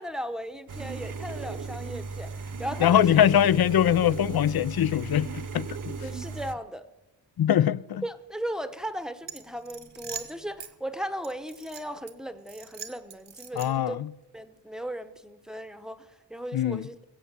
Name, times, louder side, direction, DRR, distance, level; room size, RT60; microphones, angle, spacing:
voice 1, 0.0-3.2 6.0-6.8 8.0-14.0 14.3-16.9, equal, ahead, 0.8 m, -36 dB
sound 1, 0.7-6.5, right 4 dB, 50° right, 0.9 m, -36 dB
voice 2, 2.8-6.0 7.4-8.0 13.6-14.1 16.5-16.8, left 10 dB, 60° left, 0.5 m, -22 dB
sound 2, 9.2-10.7 11.2-12.1 12.5-13.9, right 6 dB, 75° right, 1.5 m, -42 dB
21.5 x 8.3 x 7.4 m
wide cardioid pair, 135°, 42 cm